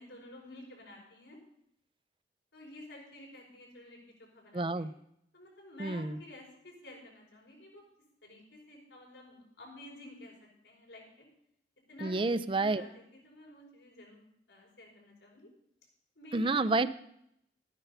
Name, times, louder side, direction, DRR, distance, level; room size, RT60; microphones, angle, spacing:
voice 1, 0.0-1.4 2.5-4.9 5.3-7.8 8.2-11.3 11.9-15.5 16.2-16.8, left 1 dB, 90° left, -2 dB, 5.4 m, -51 dB
voice 2, 4.5-4.9 5.8-6.2 12.0-12.8 16.3-16.9, right 3 dB, 30° right, 14 dB, 0.5 m, -29 dB
13.5 x 9.9 x 5.6 m, 0.72 s
head